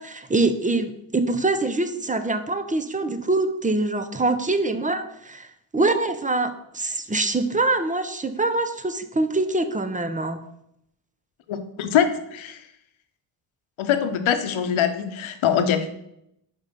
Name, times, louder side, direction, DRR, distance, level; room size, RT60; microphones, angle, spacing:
voice 1, 0.0-5.5 5.7-10.4, right 2 dB, 15° right, 9 dB, 0.7 m, -24 dB
voice 2, 11.5-12.6 13.8-15.9, left 8 dB, 75° left, 8 dB, 1.0 m, -23 dB
5.2 x 5.2 x 5.4 m, 0.78 s
cardioid pair, 65°, 48 cm